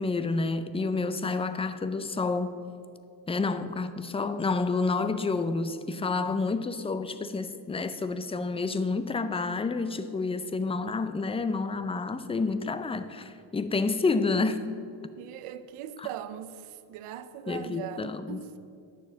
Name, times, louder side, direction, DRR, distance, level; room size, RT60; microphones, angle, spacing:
voice 1, 0.0-2.6 3.3-14.7 17.5-18.4, left 3 dB, 15° left, 0.4 m, -29 dB
voice 2, 15.2-18.6, right 10 dB, 85° right, 0.8 m, -40 dB
10.0 x 6.9 x 7.2 m
cardioid pair, 120°, 49 cm